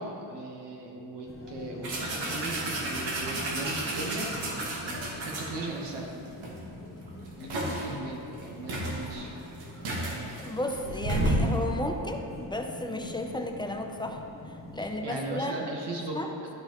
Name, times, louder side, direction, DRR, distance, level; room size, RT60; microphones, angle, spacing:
voice 1, 0.0-6.1 7.4-9.3 14.8-16.5, right 2 dB, 65° right, -1 dB, 1.2 m, -38 dB
sound 1, 1.2-15.1, left 1 dB, 30° left, 1.1 m, -45 dB
sound 2, 1.8-5.9 6.4-6.6 7.0-7.9 8.4-8.5 8.7-11.6, right 1 dB, 85° right, 1.6 m, -31 dB
voice 2, 10.4-15.5 16.1-16.3, left 1 dB, 10° left, 3 dB, 0.5 m, -34 dB
12.0 x 5.4 x 3.0 m, 2.8 s
cardioid pair, 115°, 45 cm